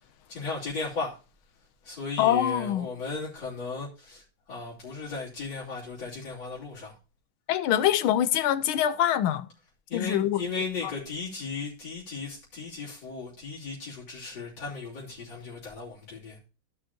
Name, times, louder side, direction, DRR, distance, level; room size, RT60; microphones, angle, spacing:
voice 1, 0.3-1.2 1.8-4.2 4.5-7.0 9.9-16.4, left 4 dB, 55° left, 3.8 m, -36 dB
voice 2, 2.2-2.9 7.5-9.5 9.9-10.4, left 11 dB, 80° left, 1.5 m, -24 dB
15.0 x 6.4 x 2.8 m
omnidirectional pair, 2.3 m